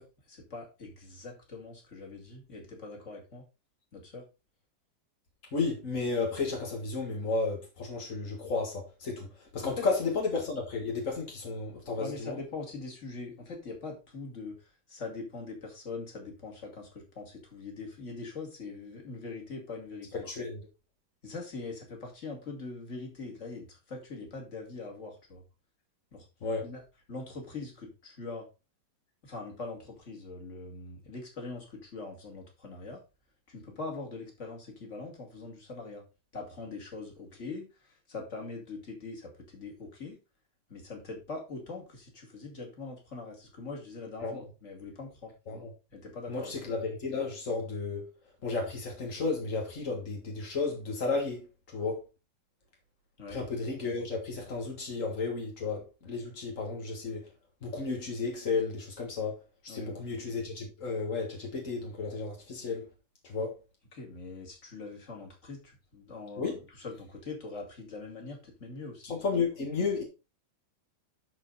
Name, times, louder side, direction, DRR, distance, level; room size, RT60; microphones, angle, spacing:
voice 1, 0.0-3.4 3.9-4.3 9.6-9.9 12.0-20.3 21.2-25.4 26.1-26.3 26.6-26.8 27.1-28.5 29.2-33.0 33.5-36.0 36.3-40.2 40.7-45.3 45.9-46.5 53.2-53.4 59.7-60.1 63.9-69.2, left 3 dB, 25° left, 1.8 m, -42 dB
voice 2, 5.5-9.3 9.5-12.3 20.2-20.6 26.4-26.6 44.2-44.4 45.5-45.7 46.3-48.0 48.4-51.4 51.7-52.0 53.3-57.3 57.6-59.3 59.6-62.8 63.3-63.5 66.4-66.6 69.0-70.0, left 4 dB, 60° left, 0.8 m, -33 dB
12.0 x 4.6 x 3.9 m
omnidirectional pair, 4.4 m